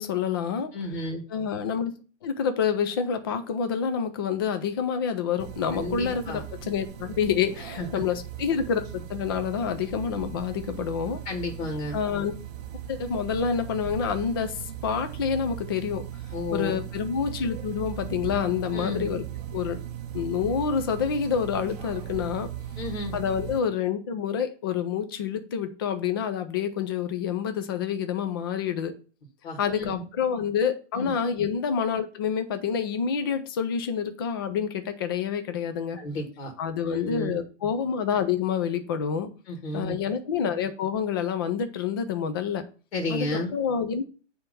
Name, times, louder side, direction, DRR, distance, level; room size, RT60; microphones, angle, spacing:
voice 1, 0.0-0.7 1.3-1.9 2.2-11.2 11.9-12.4 12.9-16.0 16.5-19.2 19.5-19.8 20.1-22.5 23.1-28.9 29.6-36.0 36.6-39.3 39.7-42.6 43.1-44.0, left 7 dB, 20° left, 8 dB, 0.4 m, -28 dB
voice 2, 0.7-1.2 5.7-6.4 7.8-7.9 11.3-12.0 16.3-16.8 18.7-19.1 22.8-23.1 29.4-30.0 30.9-31.1 36.0-36.5 36.9-37.4 39.5-40.0 42.9-43.5, left 2 dB, 50° left, 3 dB, 2.2 m, -32 dB
sound 1, 5.4-23.6, right 10 dB, 35° right, 0.7 m, -38 dB
8.8 x 3.5 x 5.3 m, 0.37 s
hypercardioid pair, 155°, 38 cm